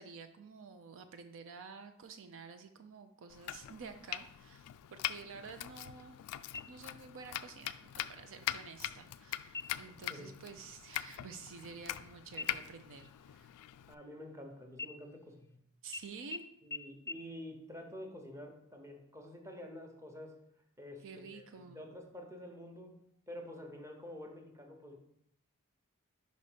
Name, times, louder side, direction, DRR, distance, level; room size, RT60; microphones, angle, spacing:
voice 1, 0.0-6.2 6.7-13.5 15.8-16.4 21.0-21.8, right 5 dB, 60° right, 8 dB, 0.4 m, -50 dB
Domestic sounds home sounds, 3.3-13.9, left 12 dB, 85° left, 0.3 m, -43 dB
sound 1, 6.5-7.2 7.6-7.7 8.2-8.8 9.5-10.0 10.4-10.6 10.9-12.0 12.4-14.4 14.7-15.5 15.9-16.0 16.3-16.4 16.7-16.8 17.1-17.2, left 4 dB, 10° left, 0.4 m, -46 dB
voice 2, 13.9-15.6 16.6-20.3 20.8-22.9 23.3-25.0, left 1 dB, 15° right, 2 dB, 0.9 m, -48 dB
5.2 x 4.1 x 5.0 m, 0.75 s
head